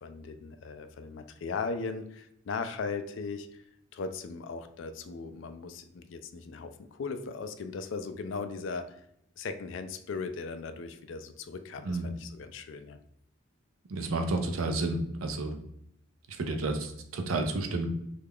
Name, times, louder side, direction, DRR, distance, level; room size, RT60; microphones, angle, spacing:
voice 1, 0.0-3.6 3.9-9.0 9.4-13.0, left 4 dB, 65° left, 9 dB, 0.3 m, -38 dB
voice 2, 13.9-15.6 16.4-17.9, right 2 dB, 85° right, 5 dB, 0.5 m, -31 dB
3.2 x 2.4 x 3.4 m, 0.75 s
head